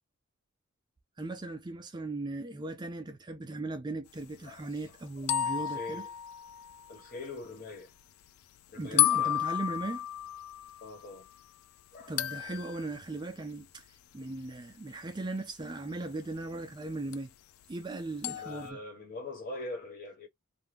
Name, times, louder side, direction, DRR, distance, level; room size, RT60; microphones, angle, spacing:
voice 1, 1.2-6.1 8.7-10.1 12.1-13.9 14.1-17.3 17.7-18.8, right 2 dB, 20° right, 0.4 m, -38 dB
sound 1, 5.3-7.2 9.0-11.3 12.2-13.0 17.1-17.2 18.2-18.7, left 12 dB, 75° left, 0.3 m, -31 dB
voice 2, 5.5-6.1 6.9-7.9 8.7-9.4 10.8-11.3 11.9-12.4 18.4-20.3, left 2 dB, 40° left, 1.1 m, -42 dB
2.6 x 2.2 x 3.2 m
head